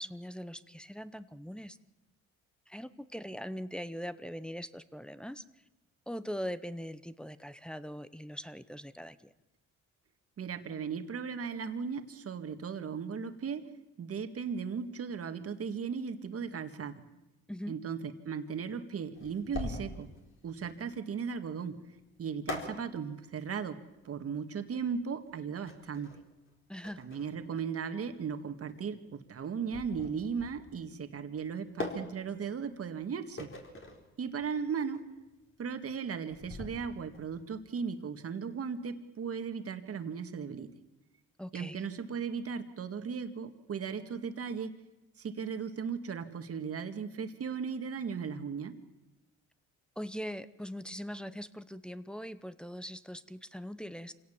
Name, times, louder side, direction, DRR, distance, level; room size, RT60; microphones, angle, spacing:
voice 1, 0.0-1.8 2.7-5.4 6.1-9.3 17.5-17.8 26.7-27.0 41.4-41.9 50.0-54.1, equal, 5° left, 12 dB, 0.9 m, -41 dB
voice 2, 10.4-13.7 14.0-17.0 17.7-20.1 20.4-21.8 22.2-23.8 24.0-26.1 27.0-33.5 34.2-35.0 35.6-40.7 41.5-44.7 45.2-48.7, right 6 dB, 50° right, 8 dB, 2.0 m, -37 dB
sound 1, 19.1-37.4, left 2 dB, 40° left, 4.4 m, -44 dB
26.5 x 17.5 x 7.3 m, 0.97 s
cardioid pair, 90°, 30 cm